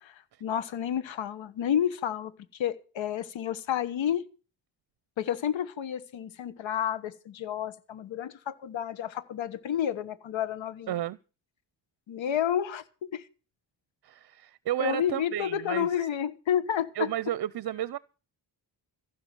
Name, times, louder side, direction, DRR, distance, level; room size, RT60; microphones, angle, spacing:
voice 1, 0.0-4.2 5.2-11.0 12.1-13.3 14.8-17.1, left 9 dB, 85° left, 1.3 m, -30 dB
voice 2, 10.9-11.2 14.0-15.9 17.0-18.0, right 12 dB, 60° right, 0.6 m, -32 dB
15.5 x 6.0 x 9.0 m
cardioid pair, 100°, 45 cm